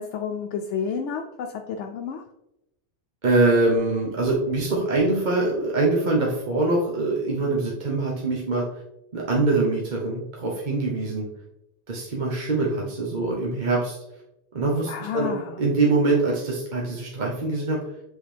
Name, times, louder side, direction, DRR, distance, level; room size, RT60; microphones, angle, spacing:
voice 1, 0.0-2.2 14.9-15.6, left 6 dB, 80° left, 4 dB, 0.9 m, -30 dB
voice 2, 3.2-8.6 9.1-11.3 11.9-14.0 14.5-15.3 15.6-17.8, right 2 dB, 45° right, -3 dB, 1.1 m, -23 dB
7.7 x 4.0 x 3.4 m, 0.86 s
omnidirectional pair, 1.2 m